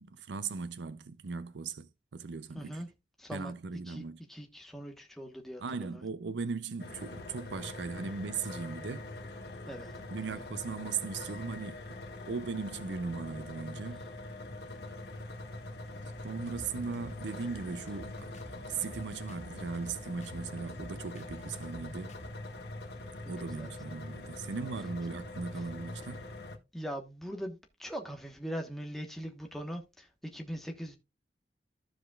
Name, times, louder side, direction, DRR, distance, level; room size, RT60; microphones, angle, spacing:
voice 1, 0.0-2.8 3.3-4.2 5.6-9.1 10.1-12.0 12.2-14.0 16.2-22.1 23.3-26.3, right 4 dB, 85° right, 0.5 m, -38 dB
voice 2, 2.5-2.9 3.2-3.5 3.9-6.0 9.7-9.9 10.2-10.4 13.8-14.1 23.2-23.7 25.5-25.7 26.7-31.0, equal, ahead, 1.1 m, -41 dB
sound 1, 6.8-26.6, left 2 dB, 70° left, 1.4 m, -44 dB
sound 2, 16.2-22.3, equal, 40° left, 1.1 m, -51 dB
15.0 x 5.0 x 2.3 m
head